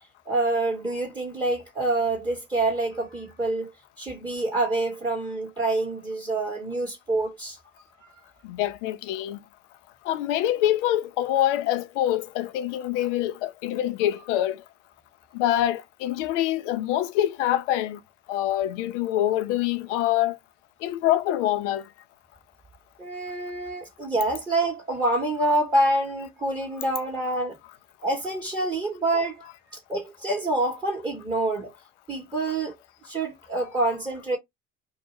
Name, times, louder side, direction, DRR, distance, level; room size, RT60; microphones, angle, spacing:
voice 1, 0.3-3.7 4.0-7.6 23.0-27.6 28.0-29.4 29.7-31.7 32.1-32.7 33.0-34.4, right 2 dB, 10° right, 0.9 m, -26 dB
voice 2, 8.4-9.4 10.0-14.6 15.3-18.0 18.3-20.4 20.8-21.9, left 13 dB, 75° left, 0.5 m, -25 dB
2.2 x 2.1 x 3.0 m
hypercardioid pair, 65°, 37 cm